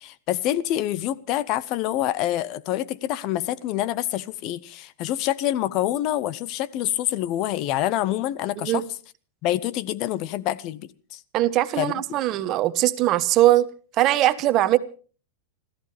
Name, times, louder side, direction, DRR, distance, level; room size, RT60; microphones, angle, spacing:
voice 1, 0.0-8.8 9.4-11.2 11.8-11.9, left 13 dB, 40° left, 0.8 m, -26 dB
voice 2, 11.3-13.7 14.0-14.8, right 14 dB, 35° right, 1.2 m, -20 dB
29.0 x 14.0 x 3.4 m
supercardioid pair, 145°, 0 cm